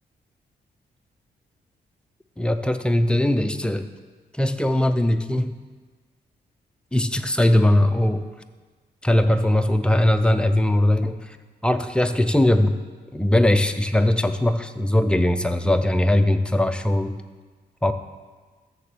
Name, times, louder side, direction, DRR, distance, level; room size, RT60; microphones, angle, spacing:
voice 1, 2.4-3.9 4.3-5.6 6.9-8.3 9.0-11.3 11.6-12.8 13.1-17.2 17.8-17.9, left 1 dB, 5° left, 8 dB, 0.3 m, -20 dB
6.8 x 6.8 x 6.6 m, 1.4 s
wide cardioid pair, 175°, 17 cm